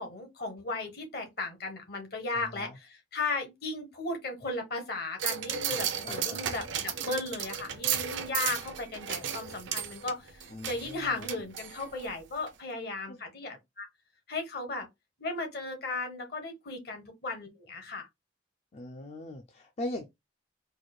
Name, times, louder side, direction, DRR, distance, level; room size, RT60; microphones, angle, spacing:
voice 1, 0.0-13.9 14.3-14.9 15.2-18.1, left 3 dB, 55° left, 1.1 m, -36 dB
voice 2, 2.3-2.8 6.0-6.5 10.5-11.3 13.1-13.2 18.7-20.0, left 1 dB, 35° left, 0.4 m, -40 dB
sound 1, 5.2-12.1 12.5-12.6, right 9 dB, 80° right, 0.5 m, -34 dB
4.7 x 2.2 x 2.3 m
head